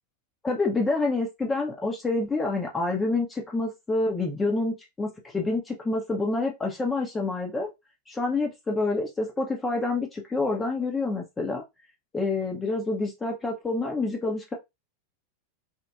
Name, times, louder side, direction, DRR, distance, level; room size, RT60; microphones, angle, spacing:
voice 1, 0.4-7.7 8.1-11.6 12.1-14.5, left 3 dB, 15° left, 0.5 m, -27 dB
2.8 x 2.1 x 2.2 m
figure-of-eight pair, 90°, 0 cm